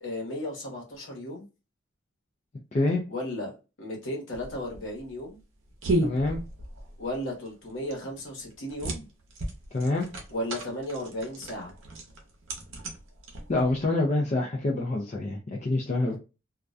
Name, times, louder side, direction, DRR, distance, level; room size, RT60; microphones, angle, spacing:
voice 1, 0.0-1.4 3.1-3.5 3.8-5.4 7.0-9.1 10.3-11.7 16.1-16.2, left 1 dB, 65° left, 1.0 m, -35 dB
voice 2, 2.7-3.0 6.0-6.4 9.7-10.1 13.5-16.2, left 2 dB, 35° left, 0.4 m, -26 dB
sound 1, 4.3-13.9, right 1 dB, 65° right, 0.7 m, -35 dB
2.4 x 2.1 x 2.4 m
head